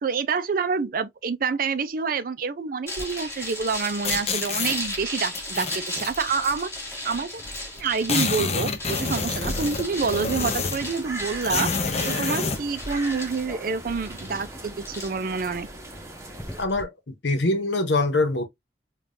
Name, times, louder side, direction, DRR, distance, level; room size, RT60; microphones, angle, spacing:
voice 1, 0.0-6.7 7.0-7.4 7.7-15.7, right 5 dB, 50° right, 0.4 m, -27 dB
sound 1, 2.9-16.8, left 1 dB, 15° left, 2.0 m, -35 dB
sound 2, 4.0-4.8 5.3-6.2 7.1-7.2 7.4-7.5 7.8-10.9 11.4-12.6, left 4 dB, 35° left, 0.6 m, -27 dB
sound 3, 9.0-16.6, right 2 dB, 15° right, 0.9 m, -40 dB
voice 2, 16.6-18.4, left 2 dB, 75° left, 1.0 m, -24 dB
5.1 x 2.4 x 2.6 m
head